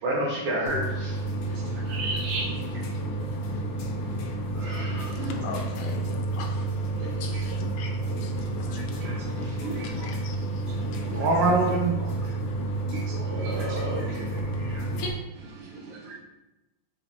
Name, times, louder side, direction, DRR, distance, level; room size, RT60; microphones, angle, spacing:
voice 1, 0.0-1.1 4.6-5.0 11.2-11.9 13.3-14.2 14.6-14.8, right 2 dB, 70° right, -5 dB, 1.4 m, -27 dB
sound 1, 0.7-15.1, right 2 dB, 70° left, 0.9 m, -30 dB
voice 2, 1.9-2.5 4.8-5.3 7.0-7.7 9.0-9.2 9.6-10.1 11.1-11.2 12.9-14.1 15.9-16.2, right 3 dB, 85° right, -1 dB, 1.5 m, -36 dB
voice 3, 5.4-6.5 7.2-8.3 10.0-10.3, left 4 dB, 85° left, 2 dB, 1.5 m, -39 dB
5.0 x 3.2 x 2.8 m, 0.97 s
omnidirectional pair, 2.2 m